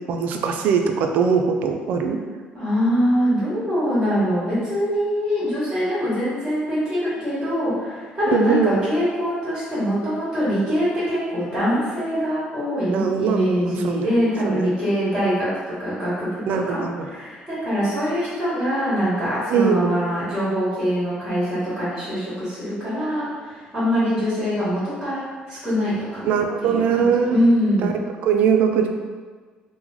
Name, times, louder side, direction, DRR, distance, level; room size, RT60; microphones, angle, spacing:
voice 1, 0.1-2.2 8.3-8.8 12.9-14.1 14.4-14.7 16.5-17.1 19.5-19.9 26.2-27.4 27.8-27.9 28.2-28.9, right 6 dB, 60° right, 4 dB, 0.3 m, -21 dB
voice 2, 2.5-16.4 16.7-28.0, equal, 10° right, -12 dB, 1.1 m, -23 dB
3.0 x 2.0 x 3.7 m, 1.5 s
cardioid pair, 165°, 3 cm